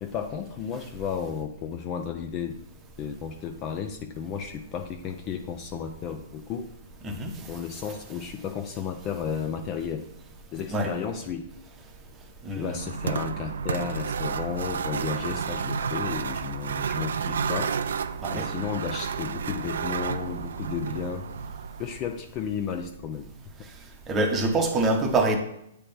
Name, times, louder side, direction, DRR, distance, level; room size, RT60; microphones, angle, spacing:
voice 1, 0.0-2.6 3.0-6.7 7.4-10.1 10.5-11.5 12.5-17.8 18.3-21.3 21.8-23.3 23.6-23.7, left 7 dB, 25° left, 7 dB, 0.4 m, -33 dB
sound 1, 12.7-22.1, right 6 dB, 75° right, 0.4 m, -31 dB
voice 2, 24.1-25.4, right 2 dB, 15° right, 3 dB, 0.8 m, -25 dB
8.8 x 3.4 x 4.3 m, 0.76 s
hypercardioid pair, 155°, 0 cm